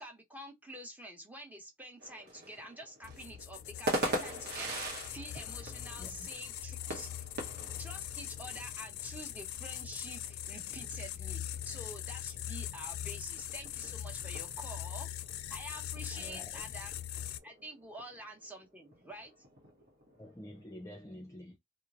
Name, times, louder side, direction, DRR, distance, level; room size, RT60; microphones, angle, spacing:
voice 1, 0.0-7.3 7.8-15.1 15.5-16.9 17.4-19.3, right 1 dB, 10° right, 0.9 m, -48 dB
sound 1, 2.0-20.9, right 1 dB, 50° right, 0.9 m, -43 dB
sound 2, 3.0-17.4, left 11 dB, 75° left, 0.4 m, -41 dB
voice 2, 16.1-16.6 20.2-21.6, left 1 dB, 15° left, 0.4 m, -48 dB
2.9 x 2.1 x 2.4 m
head